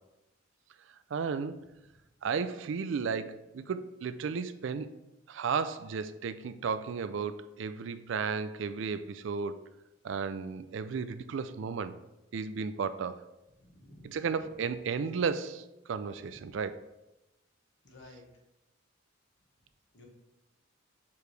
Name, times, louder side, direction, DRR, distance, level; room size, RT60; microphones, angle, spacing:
voice 1, 1.1-1.6 2.2-4.9 5.3-9.6 10.0-12.0 12.3-13.3 14.0-16.8, right 5 dB, 65° right, 0.4 m, -34 dB
voice 2, 13.6-14.3 16.2-16.6 17.8-18.2 19.9-20.0, left 1 dB, 60° left, 1.4 m, -53 dB
7.0 x 4.7 x 3.2 m
head